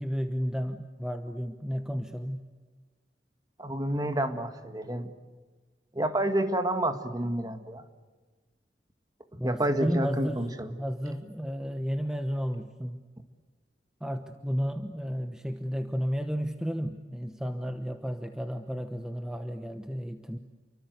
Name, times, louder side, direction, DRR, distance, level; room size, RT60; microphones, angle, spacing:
voice 1, 0.0-2.4 9.4-10.4 10.8-13.0 14.0-20.4, equal, 5° right, 6 dB, 1.1 m, -32 dB
voice 2, 3.6-5.1 5.9-7.8 9.3-10.8, right 1 dB, 20° right, 7 dB, 1.9 m, -29 dB
30.0 x 24.0 x 8.0 m, 1.3 s
head